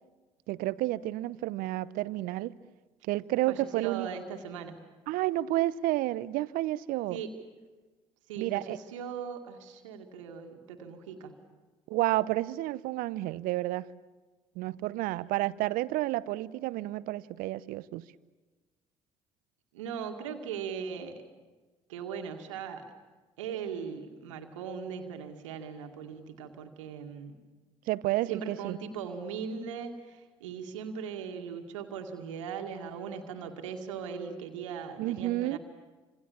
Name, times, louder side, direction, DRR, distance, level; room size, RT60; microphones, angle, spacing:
voice 1, 0.5-2.5 3.1-4.1 5.1-7.2 8.4-8.8 11.9-13.9 14.6-18.1 27.9-28.8 35.0-35.6, right 17 dB, 65° right, 0.8 m, -30 dB
voice 2, 3.5-4.8 7.1-7.3 8.3-11.4 19.7-21.2 21.9-22.9 23.4-27.4 28.3-35.6, right 7 dB, 80° right, 2.2 m, -39 dB
28.0 x 26.5 x 7.3 m
figure-of-eight pair, 55°, 16 cm